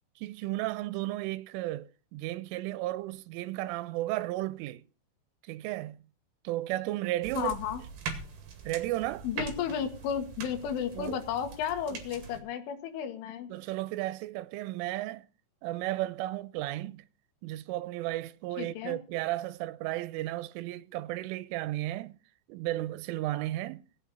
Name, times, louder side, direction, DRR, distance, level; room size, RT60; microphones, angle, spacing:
voice 1, 0.2-4.8 5.5-6.0 6.4-7.5 8.7-9.3 11.0-11.2 13.5-15.3 15.6-17.1 17.4-22.2 22.5-23.8, right 16 dB, 85° right, 3.2 m, -34 dB
sound 1, 7.2-12.4, right 5 dB, 60° right, 3.7 m, -42 dB
voice 2, 7.4-7.8 9.2-13.5 18.6-19.0, left 8 dB, 80° left, 3.9 m, -33 dB
19.0 x 9.1 x 4.1 m
omnidirectional pair, 5.6 m